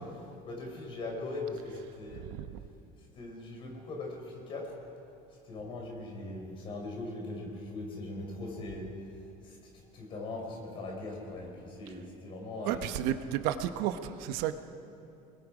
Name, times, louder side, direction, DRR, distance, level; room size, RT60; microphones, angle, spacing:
voice 1, 0.1-2.3 3.1-4.8 5.5-9.0 9.4-12.9, left 2 dB, 35° left, 0 dB, 4.3 m, -40 dB
voice 2, 2.3-2.6 12.6-14.5, right 11 dB, 75° right, 9 dB, 1.0 m, -32 dB
29.0 x 21.0 x 5.0 m, 2.7 s
cardioid pair, 175°, 16 cm